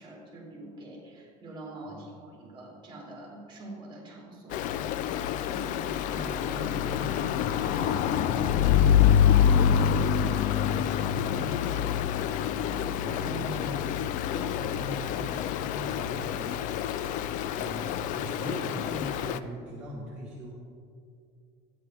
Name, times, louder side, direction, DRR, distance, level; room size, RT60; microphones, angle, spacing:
voice 1, 0.0-4.6 5.5-6.2 7.6-8.2 12.7-13.0, right 2 dB, 30° right, -3 dB, 2.9 m, -45 dB
Stream, 4.5-19.4, left 9 dB, 50° left, 0.4 m, -26 dB
voice 2, 5.8-7.5 8.1-12.2 13.0-13.8 14.3-16.6 17.5-17.9 18.1-20.6, equal, 10° right, -6 dB, 1.3 m, -40 dB
12.0 x 9.4 x 3.4 m, 2.4 s
cardioid pair, 150°, 17 cm